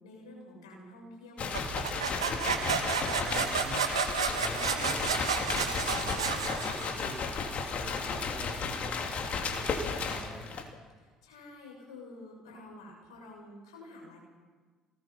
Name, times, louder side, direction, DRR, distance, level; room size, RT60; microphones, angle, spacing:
voice 1, 0.0-2.0 11.2-14.2, left 2 dB, 75° left, 0 dB, 6.9 m, -49 dB
sound 1, 1.4-10.7, left 4 dB, 45° left, 3.1 m, -34 dB
sound 2, 1.5-7.2, right 6 dB, 85° right, 1.8 m, -31 dB
voice 2, 3.0-3.9 4.2-7.3 7.7-10.5, equal, 5° left, 3 dB, 6.2 m, -46 dB
28.5 x 19.5 x 5.9 m, 1.4 s
figure-of-eight pair, 55°, 3 cm